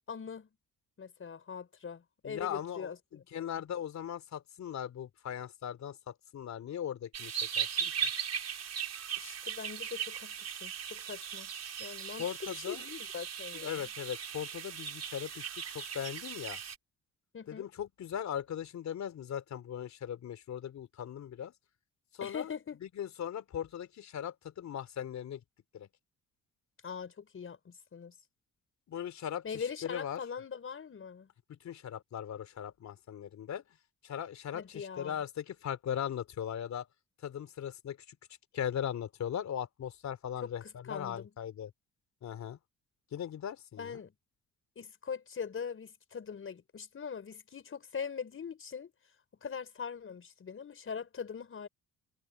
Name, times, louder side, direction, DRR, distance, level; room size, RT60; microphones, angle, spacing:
voice 1, 0.1-0.5 1.0-3.6 9.2-10.4 10.6-11.5 11.8-13.9 17.3-17.7 22.2-22.8 26.8-28.1 29.4-31.3 34.5-35.2 40.4-41.3 43.8-44.1 44.8-48.9 49.4-51.7, left 6 dB, 45° left, 6.0 m, -42 dB
voice 2, 2.2-7.9 12.2-12.8 13.6-15.5 15.7-16.6 17.5-21.5 22.2-22.5 23.0-25.4 25.7-25.9 28.9-30.2 31.5-33.6 34.0-36.9 37.2-38.2 38.5-41.7 42.2-42.6 43.1-44.0, left 9 dB, 65° left, 3.4 m, -39 dB
sound 1, 7.1-16.8, right 8 dB, 55° right, 5.0 m, -38 dB
cardioid pair, 90°, 30 cm